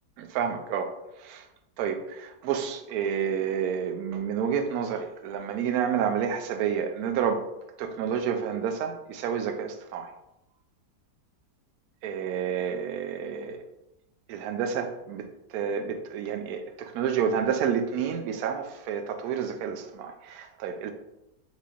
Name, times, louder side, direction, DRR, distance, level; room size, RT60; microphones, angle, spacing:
voice 1, 0.2-0.9 1.2-1.4 1.8-7.4 7.8-10.1 12.0-13.6 14.3-15.3 15.5-20.9, right 7 dB, 70° right, 6 dB, 0.9 m, -29 dB
5.7 x 3.3 x 2.4 m, 0.90 s
omnidirectional pair, 1.8 m